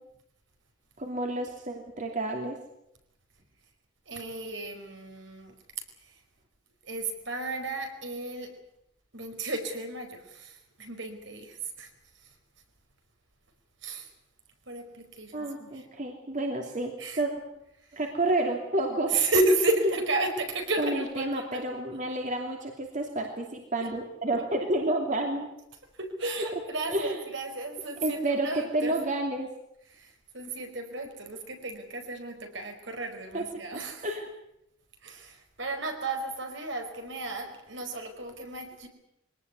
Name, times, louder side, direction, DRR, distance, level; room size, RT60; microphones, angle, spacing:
voice 1, 1.0-2.6 15.3-17.3 17.9-19.1 20.8-25.5 26.9-27.2 28.0-29.5 33.3-33.4 34.0-34.2, right 2 dB, 40° right, 2 dB, 2.8 m, -30 dB
voice 2, 4.1-5.5 6.0-6.2 6.8-8.5 9.1-12.3 13.8-14.1 14.7-15.9 17.0-17.2 17.8-18.0 19.1-21.6 25.9-28.9 29.9-34.1 35.0-38.9, right 2 dB, 65° right, 5 dB, 4.8 m, -33 dB
23.0 x 18.5 x 9.6 m, 0.81 s
head